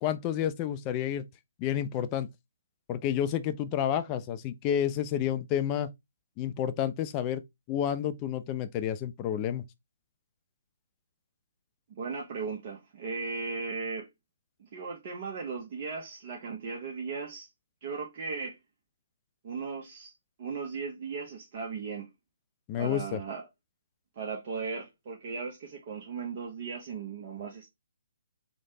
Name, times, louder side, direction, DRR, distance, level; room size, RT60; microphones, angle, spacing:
voice 1, 0.0-1.3 1.6-2.3 2.9-5.9 6.4-7.4 7.7-9.6 22.7-23.2, left 10 dB, 25° left, 0.3 m, -30 dB
voice 2, 11.9-14.1 14.6-17.5 17.8-18.6 19.4-20.1 20.4-22.1 22.8-23.5 24.2-27.7, right 5 dB, 40° right, 0.6 m, -37 dB
3.1 x 2.0 x 2.7 m
figure-of-eight pair, 135°, 0 cm